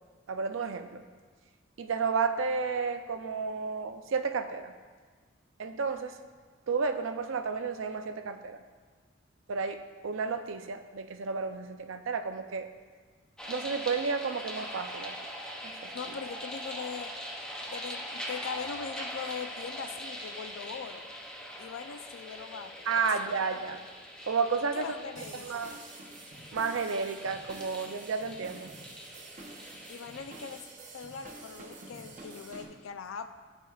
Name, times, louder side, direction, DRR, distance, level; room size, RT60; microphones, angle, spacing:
voice 1, 0.3-1.0 1.8-4.7 5.6-6.2 6.7-8.6 9.5-12.7 13.5-15.1 15.8-16.1 22.9-23.8 24.2-24.8 25.4-25.8 26.5-28.7, right 5 dB, 75° right, 8 dB, 0.5 m, -32 dB
sound 1, 13.4-30.6, equal, 5° left, 0.5 m, -42 dB
voice 2, 15.9-17.1 17.7-21.0 21.6-22.9 24.7-25.5 29.9-30.7 30.9-33.3, left 6 dB, 80° left, 10 dB, 0.4 m, -41 dB
sound 2, 25.2-32.7, right 2 dB, 40° right, 0.7 m, -48 dB
12.0 x 4.4 x 2.3 m, 1.5 s
head